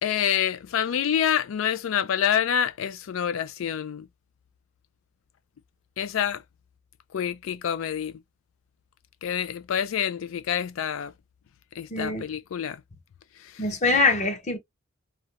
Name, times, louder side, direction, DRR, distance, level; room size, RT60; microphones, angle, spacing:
voice 1, 0.0-4.1 6.0-6.4 7.1-8.2 9.2-11.1 11.8-12.8 13.4-13.7, left 9 dB, 90° left, 0.4 m, -27 dB
voice 2, 11.9-12.2 13.6-14.6, left 3 dB, 35° left, 0.8 m, -23 dB
2.5 x 2.2 x 2.7 m
head